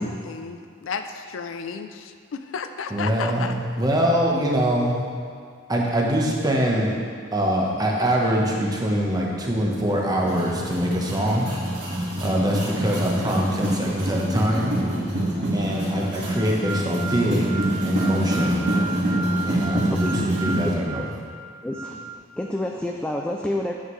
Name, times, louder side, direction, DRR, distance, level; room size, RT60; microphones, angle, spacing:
voice 1, 0.0-3.5, left 5 dB, 75° left, 8 dB, 0.4 m, -33 dB
voice 2, 2.9-5.0 5.7-7.0 7.3-11.5 12.2-14.7 15.5-18.6 19.5-21.1, equal, 20° right, -2 dB, 1.0 m, -23 dB
sound 1, 10.2-20.7, right 1 dB, 65° right, 1.9 m, -26 dB
sound 2, 16.3-22.2, right 4 dB, 40° left, 0.9 m, -34 dB
voice 3, 21.6-23.7, left 1 dB, 5° left, 1 dB, 0.3 m, -29 dB
8.8 x 7.3 x 3.2 m, 2.2 s
head